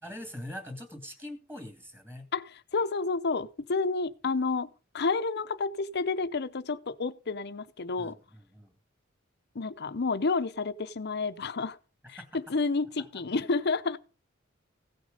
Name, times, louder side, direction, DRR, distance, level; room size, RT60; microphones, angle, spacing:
voice 1, 0.0-2.3 8.0-8.7 12.0-12.3 13.0-13.1, left 1 dB, 10° right, 2.2 m, -43 dB
voice 2, 2.3-4.7 4.9-8.1 9.5-11.8 12.1-12.2 12.5-14.0, left 4 dB, 55° left, 0.7 m, -30 dB
16.0 x 6.4 x 5.2 m
head